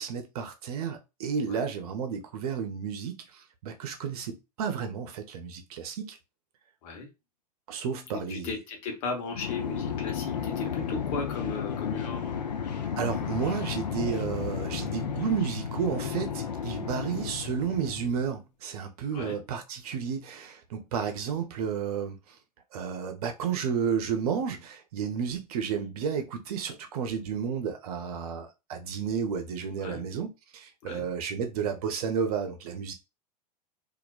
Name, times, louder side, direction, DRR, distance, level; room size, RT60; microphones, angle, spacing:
voice 1, 0.0-6.2 7.7-8.5 13.0-22.4 22.7-30.3 30.5-32.9, right 7 dB, 60° right, 0.7 m, -32 dB
voice 2, 8.3-12.3 19.1-19.4 29.8-30.0 30.8-31.0, left 4 dB, 55° left, 1.0 m, -36 dB
sound 1, 9.3-18.3, left 7 dB, 80° left, 0.4 m, -33 dB
2.4 x 2.1 x 2.3 m
figure-of-eight pair, 90°, 21 cm